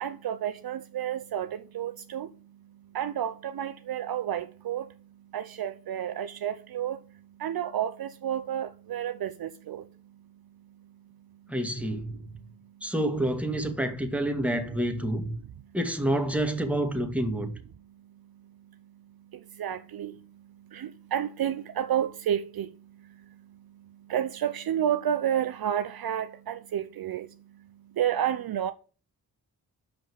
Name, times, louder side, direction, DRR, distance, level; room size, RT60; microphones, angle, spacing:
voice 1, 0.0-2.3 2.9-4.9 5.3-7.0 7.4-9.8 19.6-20.1 20.7-22.7 24.1-27.3 28.0-28.7, right 10 dB, 60° right, 0.6 m, -30 dB
voice 2, 11.5-12.3 12.8-15.4 15.7-17.5, right 1 dB, 5° right, 1.9 m, -28 dB
6.8 x 5.4 x 7.0 m
supercardioid pair, 40°, 41 cm